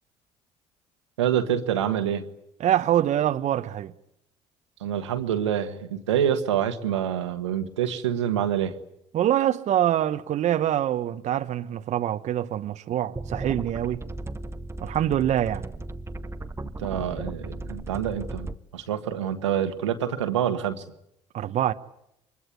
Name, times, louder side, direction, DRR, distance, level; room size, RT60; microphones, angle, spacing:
voice 1, 1.2-2.2 4.8-8.8 16.8-20.8, right 9 dB, 85° right, 1.6 m, -26 dB
voice 2, 2.6-3.9 9.1-14.0 14.8-15.6 21.3-21.7, right 11 dB, 55° right, 1.0 m, -25 dB
sound 1, 13.2-18.6, right 2 dB, 20° right, 1.1 m, -36 dB
25.0 x 21.5 x 9.6 m
hypercardioid pair, 55°, 15 cm